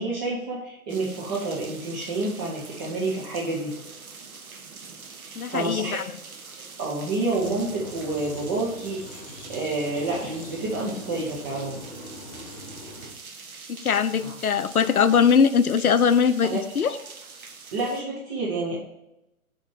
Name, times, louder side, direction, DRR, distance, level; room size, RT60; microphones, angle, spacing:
voice 1, 0.0-3.7 5.4-6.0 6.8-9.1 9.5-11.8 14.2-14.3 16.4-16.6 17.7-18.8, right 2 dB, 10° right, -6 dB, 0.6 m, -29 dB
sound 1, 0.9-18.0, right 4 dB, 70° right, 1.2 m, -44 dB
voice 2, 5.4-6.0 13.7-16.9, left 6 dB, 75° left, 13 dB, 0.7 m, -21 dB
sound 2, 7.3-13.1, left 1 dB, 20° left, 1.6 m, -42 dB
7.3 x 4.3 x 4.8 m, 0.88 s
figure-of-eight pair, 130°, 44 cm